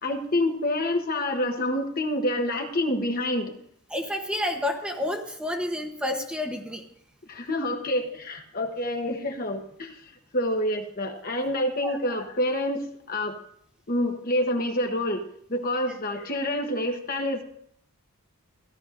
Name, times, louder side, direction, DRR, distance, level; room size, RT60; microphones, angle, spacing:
voice 1, 0.0-3.5 7.3-10.0 10.3-12.8 13.1-13.4 13.9-15.2 15.5-17.4, left 1 dB, 40° left, 4 dB, 1.1 m, -27 dB
voice 2, 3.9-6.8 11.8-11.9 15.9-16.0, left 1 dB, 5° right, 3 dB, 0.9 m, -30 dB
16.5 x 12.0 x 2.6 m, 0.66 s
head